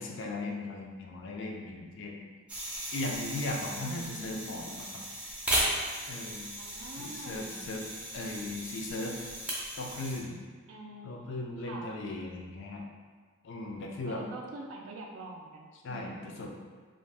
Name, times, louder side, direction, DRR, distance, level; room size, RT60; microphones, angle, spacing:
voice 1, 0.0-2.2 2.9-5.0 6.1-6.5 7.0-7.8 8.1-9.2 9.8-10.4 11.0-12.8 13.4-14.2 15.8-16.5, left 2 dB, 60° left, 0 dB, 0.3 m, -37 dB
sound 1, 2.5-10.2, right 1 dB, 5° right, 0.4 m, -36 dB
voice 2, 3.8-4.4 6.6-7.6 10.7-11.4 11.7-11.9 14.0-16.4, right 2 dB, 70° right, 0 dB, 0.3 m, -45 dB
2.5 x 2.0 x 3.2 m, 1.5 s
head